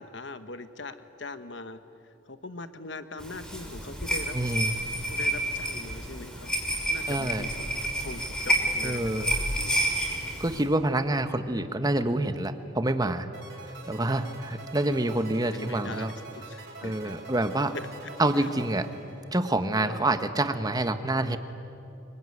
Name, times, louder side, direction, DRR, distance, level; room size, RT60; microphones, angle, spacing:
voice 1, 0.0-1.8 2.3-4.4 5.1-6.5 6.9-7.7 8.0-9.3 9.6-9.7 15.5-17.1 18.4-18.5 19.8-20.0, left 3 dB, 65° left, 10 dB, 1.3 m, -41 dB
sound 1, 3.2-10.6, right 1 dB, 5° left, 5.5 m, -30 dB
voice 2, 4.3-4.7 7.1-7.5 8.8-9.4 10.4-13.3 13.9-16.1 16.8-17.7 18.2-18.9 19.3-21.4, right 1 dB, 20° right, 9 dB, 1.2 m, -27 dB
sound 2, 13.3-19.6, right 3 dB, 60° right, 6.8 m, -46 dB
25.0 x 23.5 x 9.8 m, 2.8 s
head